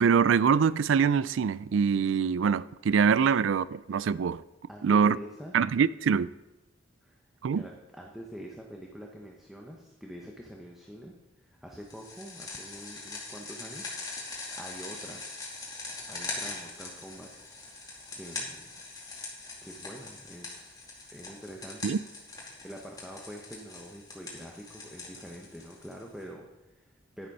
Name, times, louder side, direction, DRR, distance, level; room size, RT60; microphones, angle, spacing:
voice 1, 0.0-4.4 4.8-5.2 5.5-6.3 7.4-7.6 21.8-22.0, right 6 dB, 75° right, 0.4 m, -24 dB
voice 2, 4.7-5.5 7.0-7.2 7.5-13.9 14.2-15.2 16.1-17.3 18.1-18.7 19.6-20.8 21.1-22.0 22.4-27.3, equal, ahead, 1.0 m, -45 dB
sound 1, 11.9-26.2, left 3 dB, 20° left, 2.5 m, -42 dB
10.5 x 8.5 x 5.4 m
head